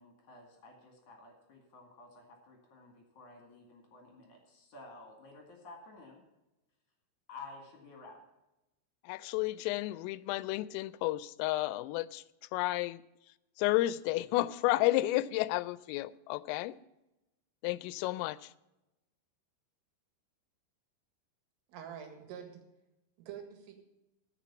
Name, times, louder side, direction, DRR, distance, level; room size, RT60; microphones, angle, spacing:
voice 1, 0.0-6.2 7.3-8.2, left 3 dB, 45° left, 3.1 m, -52 dB
voice 2, 9.0-12.2 12.5-13.0 13.6-16.8 17.6-18.5, left 17 dB, 90° left, 3.2 m, -32 dB
voice 3, 21.7-22.6 23.2-23.7, right 8 dB, 80° right, 4.3 m, -46 dB
13.5 x 7.5 x 7.0 m
omnidirectional pair, 5.7 m